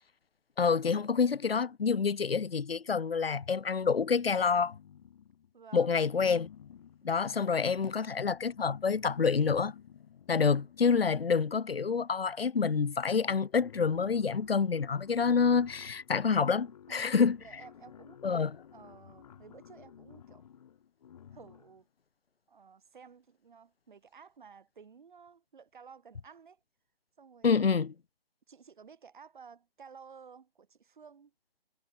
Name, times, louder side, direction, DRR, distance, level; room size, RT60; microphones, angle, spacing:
voice 1, 0.6-4.7 5.7-6.5 7.0-9.7 10.3-17.4 18.2-18.6 27.4-27.9, left 5 dB, 75° left, 0.9 m, -27 dB
sound 1, 3.7-5.5 6.0-11.7 12.6-12.7 13.0-21.8, left 9 dB, 40° left, 6.1 m, -54 dB
voice 2, 5.5-6.0 16.9-17.1 17.4-18.2 18.7-20.4 21.3-21.9 22.5-26.6 27.2-27.6 28.5-31.3, right 6 dB, 55° right, 5.8 m, -54 dB
figure-of-eight pair, 150°, 30 cm